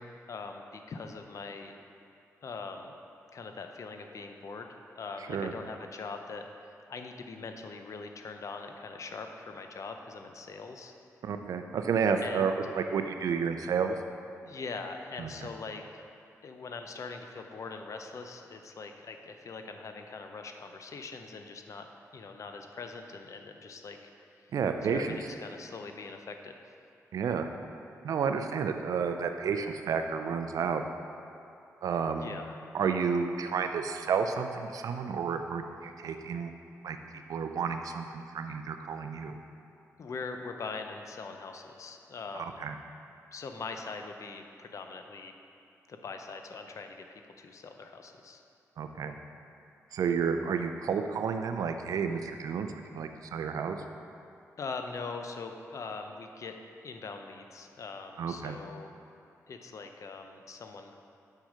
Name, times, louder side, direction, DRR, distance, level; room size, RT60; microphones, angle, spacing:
voice 1, 0.0-1.7 2.4-3.0 3.3-6.4 6.9-10.9 12.2-12.5 14.5-15.8 16.4-24.0 24.2-24.5 24.9-26.6 32.2-32.7 40.0-42.6 43.3-45.3 45.9-48.4 54.6-56.5 56.8-58.9 59.5-60.9, left 4 dB, 60° left, 5 dB, 0.6 m, -42 dB
voice 2, 11.2-13.9 15.2-15.3 24.5-25.2 27.1-27.5 28.0-30.8 31.8-32.3 32.7-36.5 36.8-39.3 42.6-42.7 48.8-49.1 49.9-53.8 58.2-58.6, right 6 dB, 80° right, 7 dB, 0.5 m, -31 dB
6.2 x 5.6 x 5.0 m, 2.6 s
cardioid pair, 70°, 6 cm